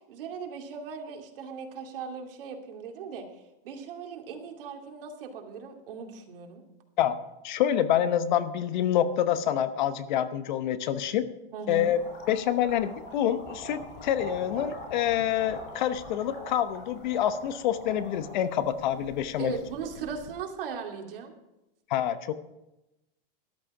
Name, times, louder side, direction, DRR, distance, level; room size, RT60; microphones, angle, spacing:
voice 1, 0.1-3.2 3.6-6.6 11.5-11.9 19.4-21.3, right 6 dB, 70° right, 2 dB, 2.6 m, -38 dB
voice 2, 7.4-11.2 11.7-12.0 12.3-19.6 21.9-22.3, left 10 dB, 55° left, 12 dB, 0.9 m, -27 dB
sound 1, 11.8-20.3, left 1 dB, 70° left, 4.7 m, -44 dB
13.5 x 12.0 x 4.8 m, 0.93 s
supercardioid pair, 170°, 29 cm